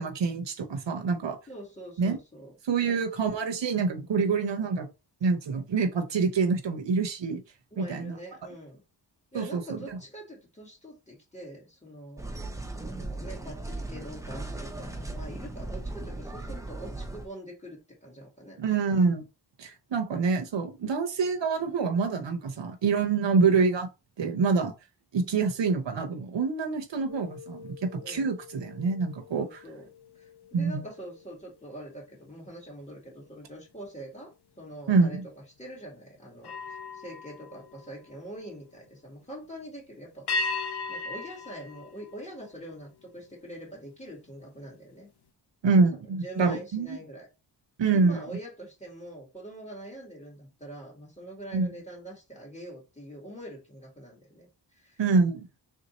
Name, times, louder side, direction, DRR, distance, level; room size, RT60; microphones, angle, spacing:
voice 1, 0.0-1.4 2.0-2.2 2.7-4.9 5.2-7.4 7.8-8.2 9.3-9.8 18.6-19.2 19.6-23.9 24.2-24.7 25.1-29.5 30.5-30.8 34.9-35.1 45.6-47.0 47.8-48.2 51.5-51.7 55.0-55.5, right 4 dB, 70° right, 0.8 m, -26 dB
voice 2, 1.5-2.5 2.8-3.0 7.7-8.8 9.3-12.3 12.8-18.6 28.0-28.4 29.4-29.9 30.2-34.3 34.6-35.2 35.6-40.3 40.9-45.1 46.0-47.3 47.9-55.0, right 1 dB, 15° left, 2.2 m, -44 dB
sound 1, 12.2-17.3, right 2 dB, 5° right, 0.7 m, -37 dB
sound 2, 27.1-32.6 33.1-33.4 36.4-38.6 40.3-42.8, left 3 dB, 60° left, 0.6 m, -39 dB
3.4 x 2.8 x 4.0 m
wide cardioid pair, 80°, 45 cm